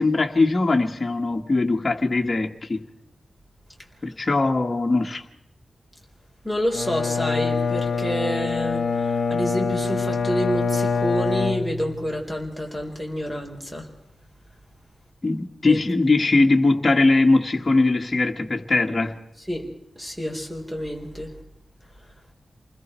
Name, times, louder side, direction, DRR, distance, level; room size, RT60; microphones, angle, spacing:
voice 1, 0.0-2.8 4.0-5.2 15.2-19.2, left 3 dB, 30° left, 1.6 m, -20 dB
voice 2, 6.4-13.9 15.7-15.8 19.5-19.6 20.0-21.3, equal, 10° right, 4.0 m, -28 dB
Bowed string instrument, 6.7-12.2, left 5 dB, 75° left, 1.1 m, -25 dB
28.0 x 21.0 x 4.5 m
wide cardioid pair, 115°, 0 cm